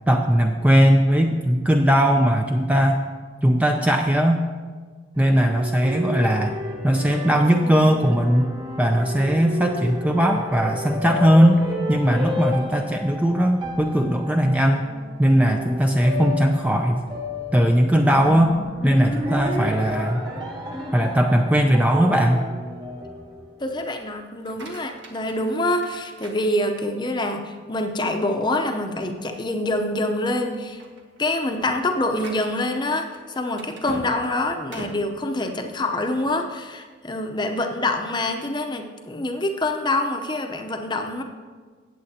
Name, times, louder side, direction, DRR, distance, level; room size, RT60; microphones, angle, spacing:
voice 1, 0.1-3.1 3.4-4.4 5.2-6.6 6.8-8.5 8.8-14.9 15.2-17.0 17.5-18.6 18.8-20.2 20.9-22.4, equal, 10° right, 3 dB, 0.4 m, -19 dB
sound 1, 5.2-23.7, left 1 dB, 25° right, 1.4 m, -32 dB
voice 2, 23.6-30.8 31.2-41.2, left 1 dB, 25° left, 4 dB, 0.7 m, -26 dB
sound 2, 24.3-27.1 27.6-28.0 28.5-28.6 29.0-29.2 29.9-30.1 30.5-36.3, right 1 dB, 70° right, 1.5 m, -42 dB
17.0 x 7.7 x 2.8 m, 1.5 s
head